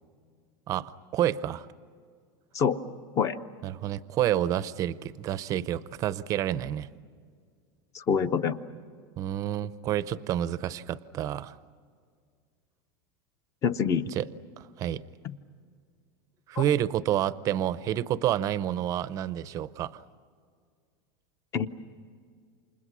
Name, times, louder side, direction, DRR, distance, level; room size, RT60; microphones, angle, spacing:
voice 1, 0.7-1.7 3.6-6.9 9.2-11.5 14.2-14.3 14.6-15.0 16.5-20.0, right 11 dB, 30° right, 16 dB, 0.6 m, -29 dB
voice 2, 7.9-8.6 13.6-14.0 15.2-15.4 16.6-16.7 21.5-21.7, left 7 dB, 25° left, 13 dB, 0.7 m, -26 dB
29.0 x 27.0 x 6.1 m, 2.1 s
supercardioid pair, 170°, 12 cm